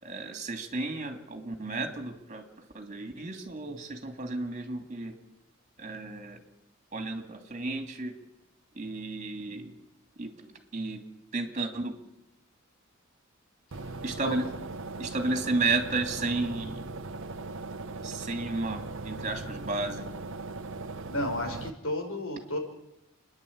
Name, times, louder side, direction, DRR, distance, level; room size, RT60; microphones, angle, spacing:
voice 1, 0.0-5.2 5.8-6.4 6.9-8.1 8.7-9.7 10.2-11.0 11.3-12.0 14.0-14.5 15.0-16.8 18.0-20.1, right 3 dB, 35° right, 5 dB, 2.9 m, -33 dB
sound 1, 13.7-21.7, right 3 dB, 65° right, 0.9 m, -39 dB
voice 2, 21.1-22.6, left 1 dB, 75° left, 3 dB, 5.2 m, -32 dB
28.5 x 10.5 x 8.8 m, 0.90 s
head